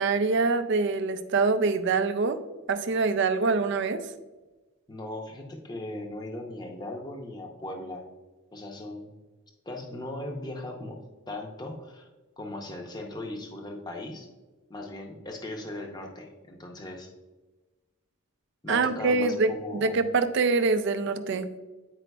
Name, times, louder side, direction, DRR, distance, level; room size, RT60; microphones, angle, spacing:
voice 1, 0.0-2.4 2.7-4.0 18.7-21.5, right 4 dB, 55° right, 11 dB, 0.4 m, -25 dB
voice 2, 4.9-8.1 8.5-9.2 9.7-11.0 11.3-12.1 12.4-14.3 14.7-17.1 18.6-20.0, left 1 dB, 20° left, 1 dB, 0.7 m, -38 dB
9.1 x 5.0 x 2.3 m, 1.2 s
head